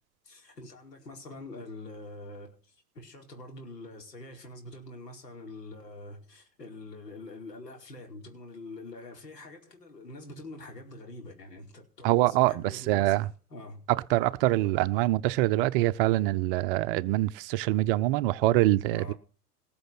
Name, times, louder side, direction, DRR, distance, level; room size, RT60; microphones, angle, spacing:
voice 1, 0.2-13.8 14.6-14.8 18.9-19.1, left 2 dB, 75° left, 4.8 m, -45 dB
voice 2, 12.0-12.5 12.9-13.3 14.1-19.1, right 16 dB, 35° right, 0.7 m, -24 dB
19.5 x 7.0 x 6.1 m
figure-of-eight pair, 95°, 49 cm